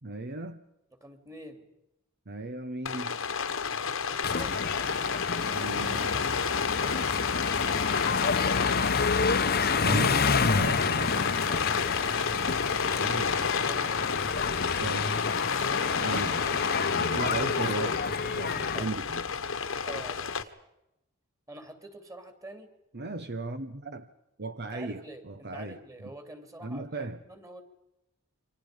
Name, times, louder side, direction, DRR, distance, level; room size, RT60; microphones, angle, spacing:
voice 1, 0.0-0.6 2.3-3.2 5.5-6.2 9.8-11.3 13.0-13.5 13.8-14.1 14.7-15.3 16.0-16.4 16.9-19.3 22.9-24.1 24.4-25.8 26.6-27.2, right 2 dB, 50° right, 9 dB, 1.1 m, -37 dB
voice 2, 1.0-1.6 4.1-4.6 11.5-12.4 14.9-15.1 15.7-16.1 18.7-18.9 19.8-20.6 21.5-22.7 24.6-27.6, right 1 dB, 15° right, 7 dB, 3.2 m, -47 dB
Rain, 2.9-20.4, left 6 dB, 65° left, 1.4 m, -30 dB
sound 1, 4.2-18.8, left 5 dB, 45° left, 1.0 m, -29 dB
29.5 x 25.0 x 5.2 m, 0.88 s
head